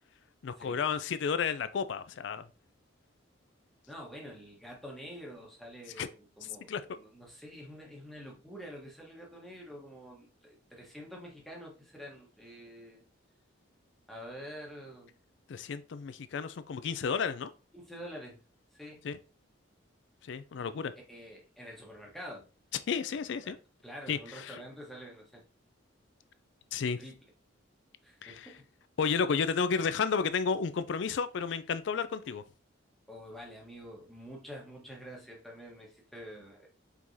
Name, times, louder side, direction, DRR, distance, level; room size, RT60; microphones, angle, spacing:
voice 1, 0.4-2.5 6.0-6.1 6.7-6.8 15.5-17.5 19.0-19.2 20.2-20.9 22.9-23.6 24.1-24.6 26.7-27.0 28.2-28.5 29.0-32.4, left 6 dB, 60° left, 0.4 m, -32 dB
voice 2, 3.9-13.0 14.1-15.1 17.7-18.4 18.7-19.1 21.1-22.4 23.1-23.5 23.8-25.4 27.0-27.2 28.0-28.6 33.1-36.7, equal, ahead, 1.1 m, -47 dB
4.6 x 3.7 x 2.7 m
head